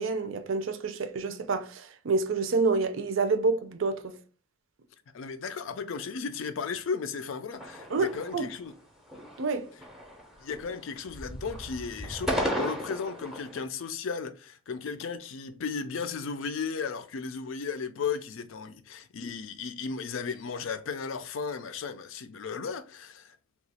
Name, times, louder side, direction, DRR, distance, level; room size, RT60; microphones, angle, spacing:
voice 1, 0.0-4.1 7.9-8.5 9.4-9.7, right 4 dB, 75° right, 0.5 m, -28 dB
voice 2, 5.1-8.7 10.4-23.4, left 5 dB, 75° left, 0.4 m, -35 dB
sound 1, 7.5-8.7 9.1-9.6 9.8-10.8 11.1-13.6, equal, ahead, 0.6 m, -35 dB
2.9 x 2.3 x 4.1 m
head